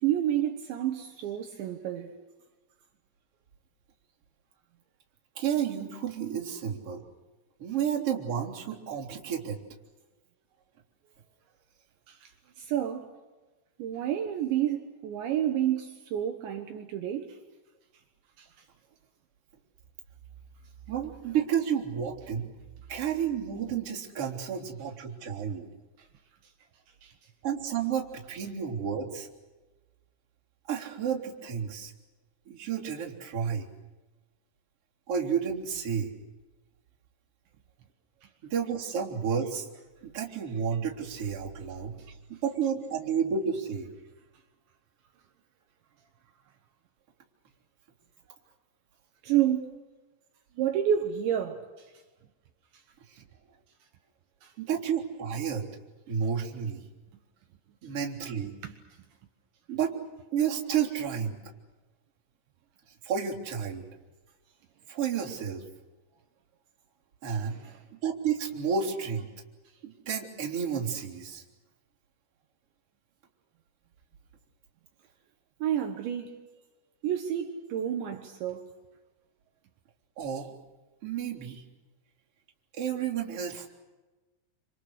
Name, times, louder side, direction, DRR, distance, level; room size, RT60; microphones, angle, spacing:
voice 1, 0.0-2.1 12.1-12.3 12.6-13.1 13.8-17.4 18.4-18.5 26.0-26.1 27.0-27.1 49.2-49.8 50.6-51.9 54.4-54.5 58.6-58.8 67.6-67.8 75.6-76.4 77.0-78.7, right 10 dB, 70° right, 3.5 m, -30 dB
voice 2, 5.4-7.0 7.6-9.6 20.9-22.5 22.9-25.7 27.4-29.3 30.7-31.9 32.5-33.7 35.1-36.1 38.4-39.7 40.0-43.9 53.1-53.2 54.6-55.7 56.1-56.8 57.8-58.5 59.7-59.9 60.3-61.4 63.0-63.9 64.9-65.6 67.2-67.6 67.9-69.3 69.8-71.4 80.2-80.5 81.0-81.6 82.7-83.7, right 7 dB, 30° right, 3.9 m, -31 dB
28.5 x 27.0 x 6.6 m
omnidirectional pair, 5.6 m